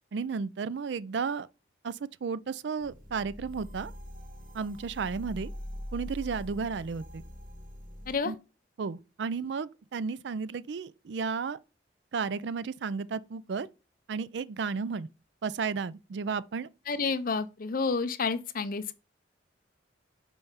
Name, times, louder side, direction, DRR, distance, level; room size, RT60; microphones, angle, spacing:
voice 1, 0.1-1.5 1.8-3.9 4.5-5.5 5.9-7.2 8.2-8.3 8.8-11.6 12.1-13.7 14.1-15.1 15.4-16.7, right 5 dB, 65° right, 0.4 m, -33 dB
sound 1, 2.8-8.2, equal, 50° right, 1.7 m, -43 dB
voice 2, 16.9-18.9, left 4 dB, 50° left, 0.6 m, -30 dB
5.4 x 4.6 x 5.6 m
head